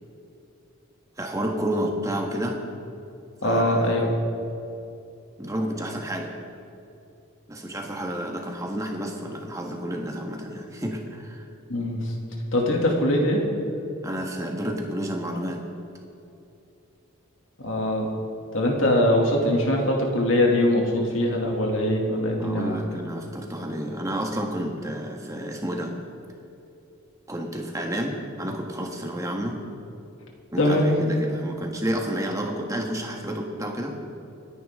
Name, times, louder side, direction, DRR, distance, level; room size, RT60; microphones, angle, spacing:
voice 1, 1.2-2.6 3.4-4.2 5.4-6.3 7.5-11.5 14.0-15.7 22.4-25.9 27.3-29.6 30.5-33.9, equal, 15° right, 1 dB, 1.5 m, -30 dB
voice 2, 3.4-4.1 11.7-12.1 12.5-13.4 17.6-18.1 18.5-22.8 30.6-30.9, left 1 dB, 65° left, -1 dB, 2.5 m, -22 dB
27.0 x 10.0 x 3.7 m, 2.7 s
head